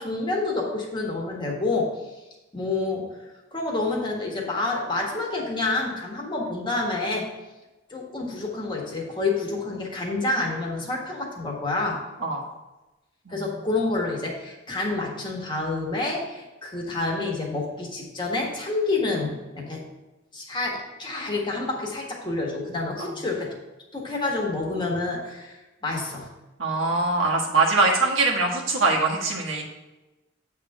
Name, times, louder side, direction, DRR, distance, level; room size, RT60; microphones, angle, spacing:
voice 1, 0.0-2.0 2.5-3.2 3.5-7.3 7.9-12.0 13.3-19.8 20.3-23.5 23.9-26.3, left 3 dB, 25° left, -2 dB, 1.5 m, -28 dB
voice 2, 26.6-29.6, right 3 dB, 75° right, -1 dB, 1.6 m, -22 dB
8.0 x 3.6 x 6.5 m, 1.1 s
head